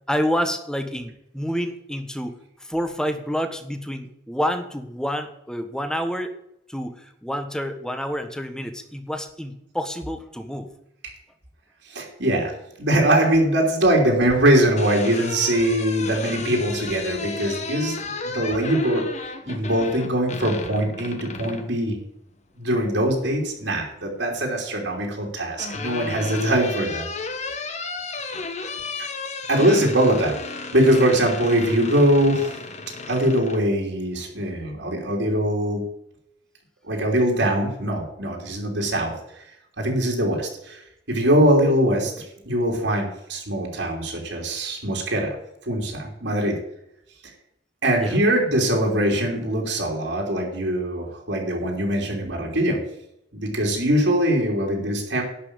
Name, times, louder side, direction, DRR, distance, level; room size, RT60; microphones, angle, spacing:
voice 1, 0.1-6.3 6.7-10.7 29.6-29.7 48.0-48.2, equal, 5° left, 8 dB, 1.2 m, -28 dB
voice 2, 11.9-12.5 12.8-22.0 22.6-27.1 28.9-29.1 29.5-30.3 30.7-32.6 33.1-35.8 36.9-39.4 39.8-40.8 41.1-42.1 42.4-45.3 45.6-46.5 47.8-52.8 53.3-55.2, right 1 dB, 75° right, -1 dB, 3.3 m, -22 dB
sound 1, 14.8-21.7 23.2-23.9 25.1-33.6, left 3 dB, 40° left, 1.3 m, -34 dB
11.5 x 5.8 x 8.9 m, 0.80 s
head